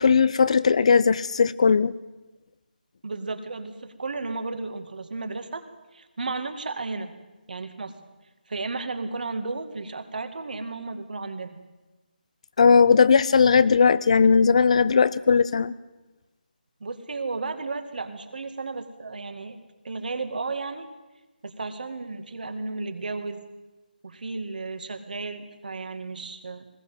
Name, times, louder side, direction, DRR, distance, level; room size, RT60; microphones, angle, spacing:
voice 1, 0.0-1.9 12.6-15.7, left 5 dB, 40° left, 19 dB, 0.7 m, -18 dB
voice 2, 3.0-5.6 5.9-7.1 7.5-7.9 8.5-11.6 16.8-19.6 19.8-20.9 21.4-23.4 24.0-26.7, right 3 dB, 60° right, 8 dB, 2.3 m, -33 dB
20.0 x 18.0 x 7.6 m, 1.1 s
figure-of-eight pair, 170°, 5 cm